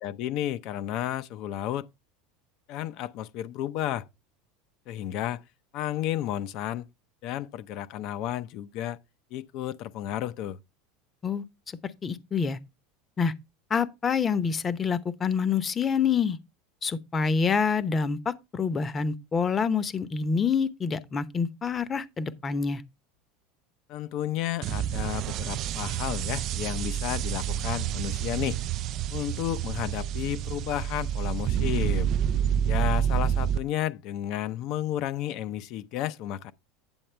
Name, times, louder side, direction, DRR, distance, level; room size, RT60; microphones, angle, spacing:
voice 1, 0.0-1.9 2.7-4.1 4.9-5.4 5.7-6.9 7.2-9.0 9.3-10.6 23.9-28.6 29.1-32.1 32.7-36.5, left 12 dB, 50° left, 0.6 m, -32 dB
voice 2, 12.0-12.6 13.2-13.3 13.7-16.4 16.8-22.8, left 6 dB, 20° left, 0.8 m, -27 dB
sound 1, 24.6-33.6, right 10 dB, 40° right, 0.4 m, -28 dB
8.9 x 7.7 x 3.3 m
supercardioid pair, 140°, 0 cm